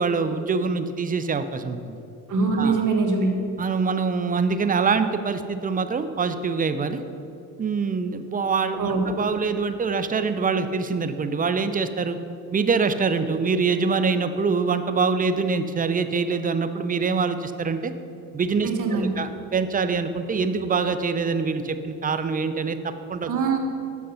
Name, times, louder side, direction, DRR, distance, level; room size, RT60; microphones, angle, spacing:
voice 1, 0.0-1.9 2.6-2.8 3.6-7.0 7.6-12.2 12.5-17.9 18.3-23.3, right 4 dB, 20° right, 10 dB, 0.5 m, -24 dB
voice 2, 2.3-3.3 8.8-9.0 18.6-19.1 23.3-23.6, right 4 dB, 50° right, 2 dB, 1.4 m, -23 dB
6.8 x 6.4 x 5.5 m, 2.7 s
supercardioid pair, 75°, 39 cm